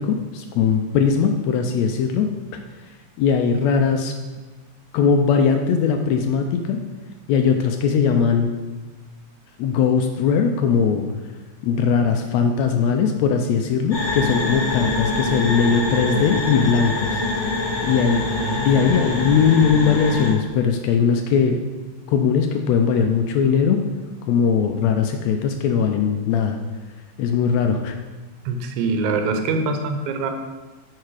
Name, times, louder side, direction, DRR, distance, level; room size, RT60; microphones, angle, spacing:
voice 1, 0.0-2.6 3.2-4.1 4.9-6.8 7.3-8.5 9.6-11.1 11.6-17.2 17.8-18.2 18.6-21.6 22.1-23.8 24.3-26.6 27.2-28.0, left 6 dB, 80° left, 5 dB, 1.7 m, -19 dB
sound 1, 13.9-20.3, left 2 dB, 35° left, 1.3 m, -25 dB
voice 2, 28.5-30.3, right 4 dB, 85° right, 6 dB, 2.2 m, -24 dB
9.0 x 4.8 x 4.8 m, 1.3 s
omnidirectional pair, 3.3 m